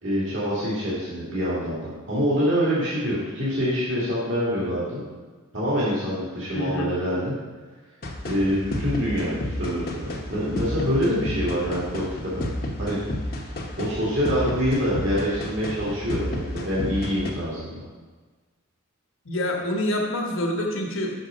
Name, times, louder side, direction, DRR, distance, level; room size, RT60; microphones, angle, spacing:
voice 1, 0.0-5.0 5.5-7.3 8.2-12.4 12.8-13.0 13.8-17.8, equal, 60° right, -8 dB, 2.2 m, -25 dB
voice 2, 6.5-6.9 19.2-21.1, left 1 dB, 65° left, 1 dB, 1.3 m, -26 dB
sound 1, 8.0-17.3, left 1 dB, 45° left, 0.9 m, -31 dB
6.5 x 6.0 x 5.1 m, 1.3 s
head